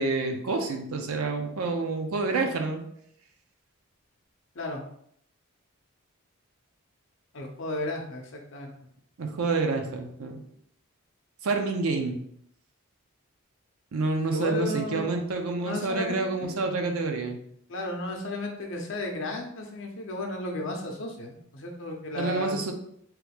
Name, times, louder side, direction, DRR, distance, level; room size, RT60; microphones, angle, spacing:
voice 1, 0.0-2.8 9.2-10.4 11.4-12.2 13.9-17.4 22.2-22.7, right 3 dB, 80° right, 4 dB, 0.5 m, -28 dB
voice 2, 7.3-8.7 14.3-15.1 15.6-16.5 17.7-22.6, left 1 dB, 60° left, 2 dB, 0.6 m, -34 dB
3.1 x 2.3 x 3.4 m, 0.69 s
head